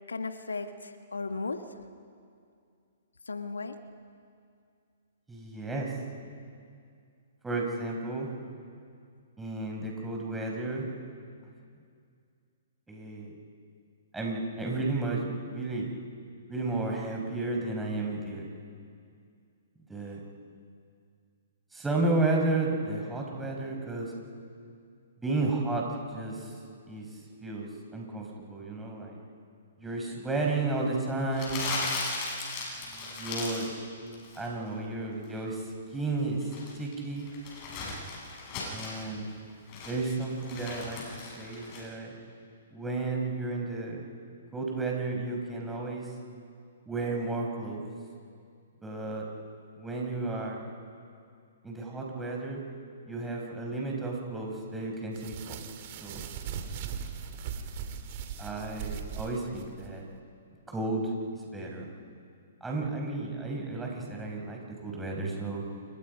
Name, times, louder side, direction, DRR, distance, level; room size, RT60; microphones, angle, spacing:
voice 1, 0.1-1.7 3.3-3.8, left 3 dB, 85° left, 8 dB, 1.4 m, -35 dB
voice 2, 5.3-5.9 7.4-8.3 9.4-11.0 12.9-13.3 14.1-15.9 16.5-18.5 19.9-20.2 21.7-24.1 25.2-25.9 26.1-26.5 26.9-27.1 27.4-29.2 29.8-31.6 32.9-33.7 34.4-35.7 35.9-37.3 38.7-39.3 39.9-41.0 41.4-42.1 42.7-44.0 44.5-46.1 46.9-47.8 48.8-49.2 49.8-50.6 51.6-52.6 53.1-55.6 56.0-56.3 57.5-57.6 58.4-60.0 60.7-61.9 62.6-65.6, right 2 dB, 10° right, -1 dB, 5.3 m, -32 dB
Crumpling crinkling, 31.3-33.7 34.1-34.5 36.2-39.0 39.5-41.8, left 3 dB, 35° left, 7.4 m, -37 dB
sound 1, 55.1-59.9, right 7 dB, 45° right, 2.4 m, -39 dB
28.5 x 23.0 x 5.4 m, 2.3 s
hypercardioid pair, 125°, 0 cm